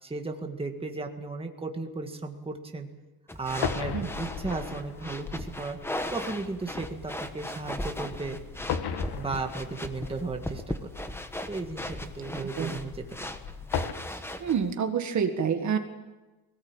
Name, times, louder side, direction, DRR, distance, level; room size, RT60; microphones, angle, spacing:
voice 1, 0.0-2.9 3.4-5.8 6.1-8.4 9.1-10.7 11.5-13.3, right 3 dB, 15° right, 4 dB, 1.8 m, -35 dB
sound 1, 3.3-14.7, left 1 dB, 5° left, 1.2 m, -38 dB
sound 2, 3.6-13.9, left 7 dB, 70° left, 1.9 m, -38 dB
voice 2, 12.4-12.7 14.4-15.8, right 7 dB, 45° right, 6 dB, 1.8 m, -27 dB
21.0 x 18.5 x 8.9 m, 1.1 s
cardioid pair, 160°, 39 cm